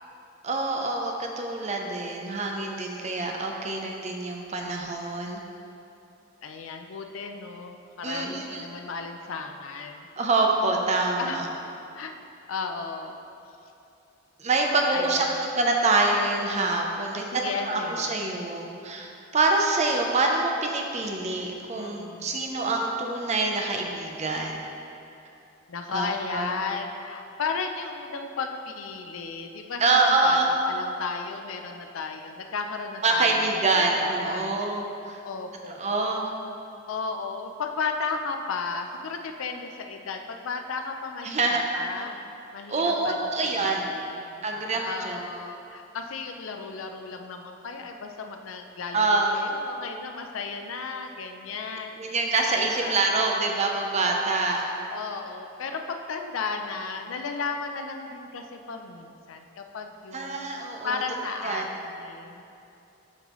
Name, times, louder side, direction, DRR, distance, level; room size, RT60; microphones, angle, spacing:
voice 1, 0.4-5.4 8.0-8.7 10.2-11.5 14.4-24.6 25.9-26.1 26.3-26.5 29.8-30.5 33.0-35.2 35.7-36.3 41.2-41.6 42.7-43.9 44.4-45.2 48.9-49.4 52.0-54.7 60.1-61.0 61.4-61.7, right 3 dB, 35° right, 1 dB, 0.6 m, -26 dB
voice 2, 6.4-10.1 11.2-11.4 11.9-12.1 12.5-13.1 14.9-15.4 17.1-18.3 21.7-22.4 25.7-33.4 33.7-33.8 34.2-34.8 35.2-35.8 36.9-42.2 42.5-43.2 43.6-44.4 44.9-52.2 52.6-53.2 54.9-60.4 60.8-62.4, left 4 dB, 85° left, 5 dB, 0.5 m, -34 dB
11.5 x 4.0 x 3.1 m, 2.7 s
head